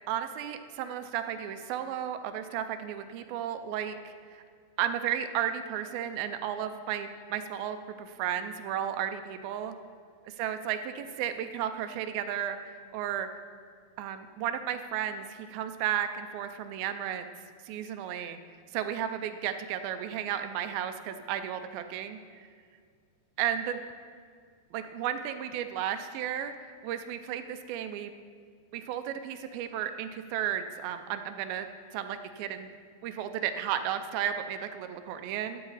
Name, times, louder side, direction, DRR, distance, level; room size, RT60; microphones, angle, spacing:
voice 1, 0.1-4.4 4.8-9.8 10.2-13.3 14.0-17.3 17.7-18.4 18.7-22.5 23.4-23.8 24.7-26.5 26.8-28.1 28.7-31.7 31.9-32.7 33.0-35.6, right 10 dB, 80° right, 9 dB, 2.2 m, -33 dB
12.5 x 8.2 x 4.0 m, 2.1 s
omnidirectional pair, 4.5 m